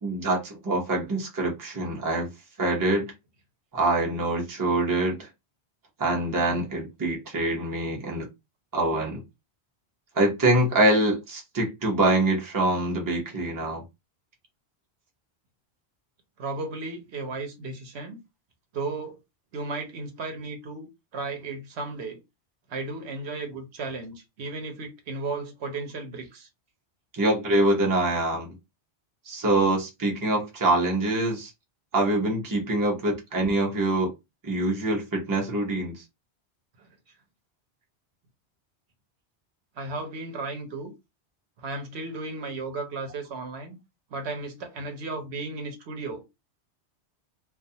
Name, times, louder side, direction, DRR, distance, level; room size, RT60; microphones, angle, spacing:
voice 1, 0.0-2.3 2.6-3.1 3.7-5.3 6.0-8.3 8.7-9.2 10.2-13.8 27.1-28.6 29.3-31.5 31.9-34.1 34.4-36.0, right 2 dB, 25° right, 0.5 m, -25 dB
voice 2, 16.4-18.2 18.7-19.2 19.5-20.9 21.1-22.2 22.7-26.5 36.8-36.9 39.8-40.9 41.6-43.8 44.1-46.3, right 3 dB, 75° right, 1.0 m, -34 dB
2.4 x 2.3 x 2.7 m
omnidirectional pair, 1.1 m